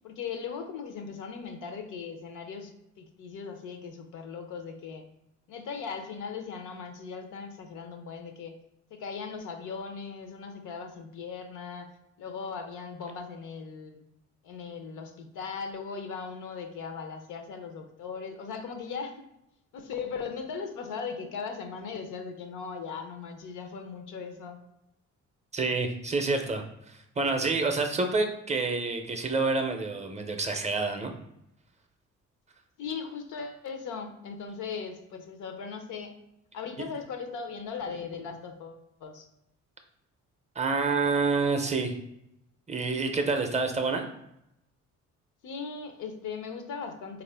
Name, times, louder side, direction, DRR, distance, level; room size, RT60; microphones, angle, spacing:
voice 1, 0.0-5.0 5.5-8.6 8.9-11.9 12.2-14.0 14.4-19.2 19.7-24.6 32.8-36.1 36.5-39.3 45.4-47.2, left 5 dB, 85° left, 5 dB, 0.6 m, -38 dB
voice 2, 25.5-31.1 36.8-36.9 40.6-41.9 42.7-44.1, right 3 dB, 25° right, 4 dB, 0.5 m, -28 dB
3.5 x 2.4 x 3.3 m, 0.83 s
cardioid pair, 90°, 30 cm